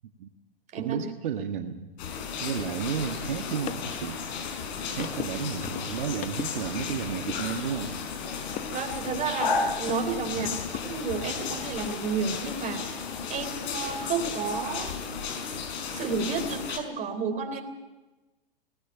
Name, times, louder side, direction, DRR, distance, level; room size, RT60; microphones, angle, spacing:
voice 1, 0.8-1.9 2.4-4.7 5.0-7.9 10.4-10.5, right 8 dB, 60° right, 5 dB, 1.5 m, -33 dB
sound 1, 2.0-16.8, left 5 dB, 50° left, 4.7 m, -34 dB
sound 2, 3.1-10.1 10.4-11.9, left 12 dB, 25° left, 1.0 m, -41 dB
voice 2, 8.7-10.6 10.8-13.0 13.3-14.9 15.9-17.6, right 5 dB, 25° right, 6 dB, 3.7 m, -31 dB
18.5 x 18.5 x 9.1 m, 1.2 s
hypercardioid pair, 115°, 29 cm